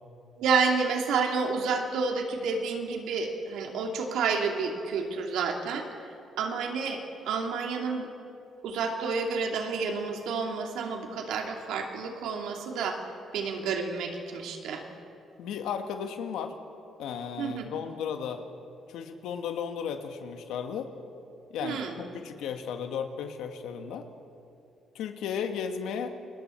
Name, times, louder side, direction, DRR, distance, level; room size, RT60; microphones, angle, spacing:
voice 1, 0.4-5.9 6.4-7.0 7.3-8.1 8.6-13.0 13.3-14.8 17.4-17.7 21.6-22.0, right 5 dB, 85° right, 2 dB, 2.6 m, -29 dB
voice 2, 15.4-16.6 17.0-18.4 18.9-20.9 21.5-24.1 24.9-26.1, left 7 dB, 85° left, 6 dB, 1.6 m, -34 dB
28.5 x 21.0 x 4.5 m, 2.6 s
cardioid pair, 90°, 0 cm